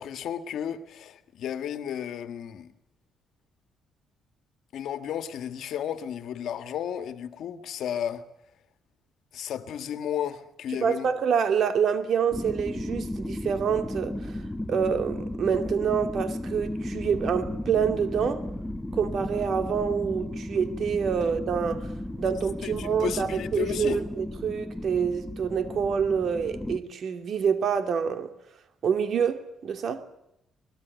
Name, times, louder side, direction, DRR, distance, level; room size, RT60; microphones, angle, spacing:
voice 1, 0.0-2.7 4.7-8.2 9.3-11.1 22.6-24.0, left 9 dB, 75° left, 1.8 m, -33 dB
voice 2, 10.8-14.4 14.7-18.4 18.9-21.9 22.2-28.3 28.8-30.0, right 7 dB, 60° right, 2.6 m, -27 dB
sound 1, 12.3-26.8, left 1 dB, 10° left, 1.7 m, -34 dB
24.0 x 20.5 x 8.2 m
cardioid pair, 90°, 0 cm